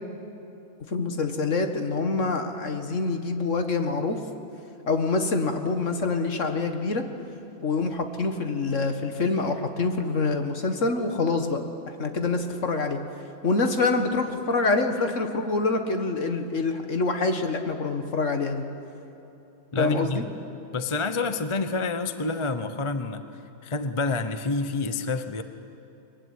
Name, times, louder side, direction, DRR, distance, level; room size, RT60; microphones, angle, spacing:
voice 1, 0.9-4.2 4.9-7.0 7.6-11.6 11.9-13.0 13.4-18.6 19.8-20.2, left 3 dB, 55° left, 6 dB, 2.0 m, -26 dB
voice 2, 19.7-20.3 20.7-23.3 23.6-25.4, left 3 dB, 25° left, 10 dB, 0.7 m, -28 dB
23.5 x 21.5 x 9.7 m, 2.9 s
omnidirectional pair, 1.6 m